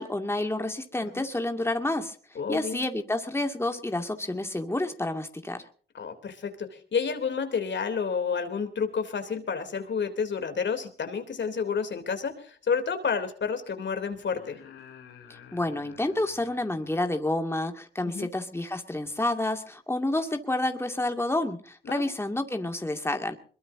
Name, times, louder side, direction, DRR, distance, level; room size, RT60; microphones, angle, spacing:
voice 1, 0.0-2.2 2.5-5.6 15.3-23.4, left 1 dB, 10° left, 5 dB, 2.3 m, -29 dB
voice 2, 2.3-2.8 5.9-14.6 18.1-18.3 21.8-22.0, left 6 dB, 60° left, 8 dB, 3.3 m, -30 dB
sound 1, 12.2-12.3 14.1-17.0 19.0-19.1, left 8 dB, 90° left, 3.2 m, -52 dB
22.0 x 22.0 x 2.7 m, 0.43 s
cardioid pair, 60°, 21 cm